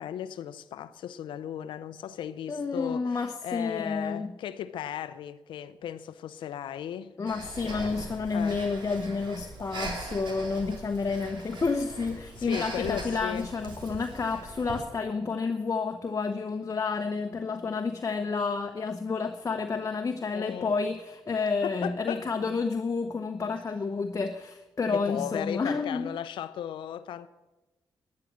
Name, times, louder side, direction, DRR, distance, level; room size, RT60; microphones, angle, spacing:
voice 1, 0.0-7.1 7.6-7.9 8.3-8.6 12.4-13.5 20.3-20.7 21.6-22.3 24.9-27.3, left 10 dB, 80° left, 0.7 m, -36 dB
voice 2, 2.5-4.3 7.2-26.1, left 4 dB, 40° left, 1.1 m, -30 dB
Breathing, 7.3-14.8, right 3 dB, 70° right, 3.4 m, -41 dB
11.5 x 10.5 x 7.6 m
supercardioid pair, 60°, 8 cm